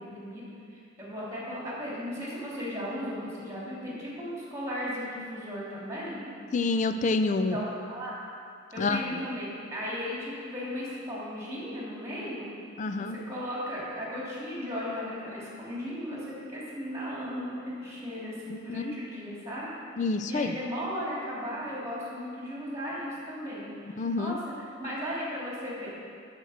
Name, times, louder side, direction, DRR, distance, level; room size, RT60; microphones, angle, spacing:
voice 1, 0.0-6.3 7.5-8.2 8.7-12.4 13.0-19.7 20.3-25.9, equal, 15° right, -6 dB, 2.7 m, -36 dB
voice 2, 6.5-7.6 8.8-9.2 12.8-13.2 18.5-18.9 20.0-20.6 24.0-24.4, left 3 dB, 35° left, 8 dB, 0.4 m, -28 dB
13.0 x 4.5 x 6.4 m, 2.4 s
head